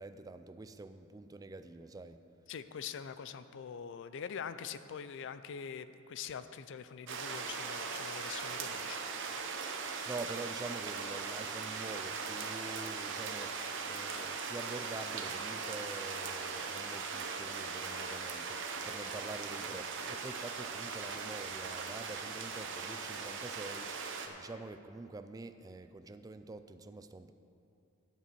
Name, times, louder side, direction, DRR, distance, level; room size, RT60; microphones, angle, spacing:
voice 1, 0.0-2.2 9.7-27.3, right 3 dB, 15° right, 10 dB, 0.3 m, -46 dB
voice 2, 2.5-9.0, left 7 dB, 60° left, 12 dB, 0.4 m, -44 dB
sound 1, 7.1-24.3, right 5 dB, 60° right, 0.8 m, -39 dB
8.4 x 6.9 x 7.5 m, 2.7 s
head